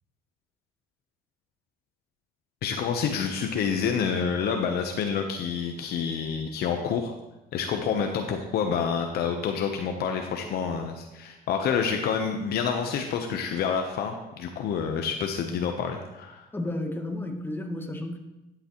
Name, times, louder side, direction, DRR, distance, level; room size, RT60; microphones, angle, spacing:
voice 1, 2.6-7.1 7.5-16.5, left 6 dB, 70° left, 4 dB, 0.9 m, -28 dB
voice 2, 16.5-18.2, left 1 dB, 10° left, 4 dB, 1.1 m, -32 dB
11.5 x 8.1 x 3.1 m, 1.0 s
cardioid pair, 110°, 17 cm